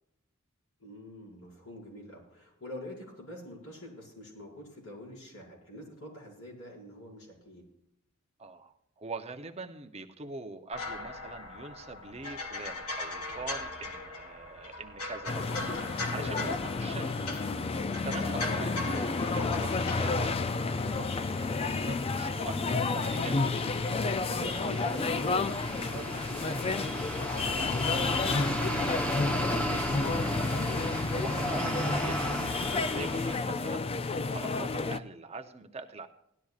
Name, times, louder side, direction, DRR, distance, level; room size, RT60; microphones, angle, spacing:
voice 1, 0.8-7.7 16.1-16.5 24.2-29.4, equal, 70° left, -4 dB, 5.4 m, -45 dB
voice 2, 8.4-17.1 17.6-23.5 30.1-36.1, right 3 dB, 30° right, 6 dB, 0.7 m, -43 dB
sound 1, 10.7-20.4, left 2 dB, 85° left, 1.6 m, -39 dB
sound 2, 15.3-35.0, left 3 dB, 25° left, 0.4 m, -31 dB
sound 3, 17.6-33.4, equal, 5° left, 1.0 m, -36 dB
17.5 x 12.0 x 2.4 m, 0.79 s
head